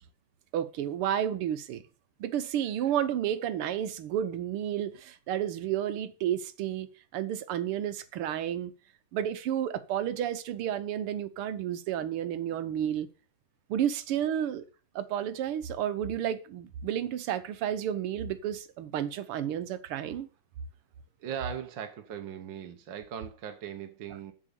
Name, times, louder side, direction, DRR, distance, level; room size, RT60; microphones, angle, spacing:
voice 1, 0.5-1.8 2.2-6.9 7.1-8.7 9.1-13.1 13.7-14.7 15.0-20.3, right 10 dB, 85° right, 1.8 m, -31 dB
voice 2, 21.2-24.3, right 8 dB, 60° right, 1.7 m, -39 dB
7.7 x 7.3 x 6.8 m
omnidirectional pair, 2.4 m